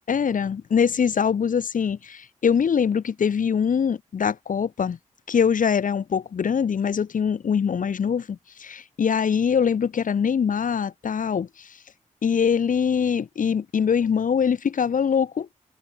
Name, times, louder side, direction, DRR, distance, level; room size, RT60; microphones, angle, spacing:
voice 1, 0.1-5.0 5.3-11.7 12.2-15.5, left 7 dB, 80° left, 3.6 m, -23 dB
wide cardioid pair, 95°, 13 cm